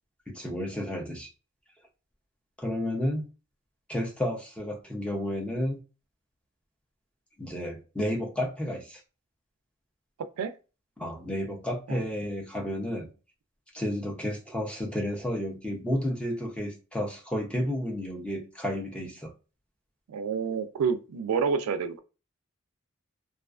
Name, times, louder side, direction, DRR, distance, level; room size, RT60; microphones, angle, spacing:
voice 1, 0.3-1.3 2.6-3.3 3.9-5.8 7.4-9.0 11.0-13.1 13.7-19.3, left 1 dB, 5° left, 0.4 m, -31 dB
voice 2, 20.1-22.0, right 6 dB, 90° right, 0.3 m, -28 dB
2.3 x 2.3 x 2.3 m
head